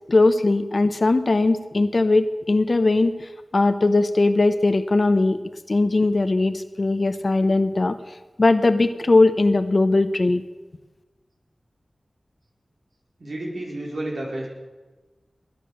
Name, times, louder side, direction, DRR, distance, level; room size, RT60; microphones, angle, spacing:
voice 1, 0.1-5.4 5.7-8.0 8.4-10.4, left 2 dB, 55° left, 10 dB, 0.9 m, -19 dB
voice 2, 13.2-14.5, right 1 dB, 80° right, -3 dB, 4.6 m, -31 dB
20.0 x 10.0 x 6.9 m, 1.2 s
cardioid pair, 40°, 0 cm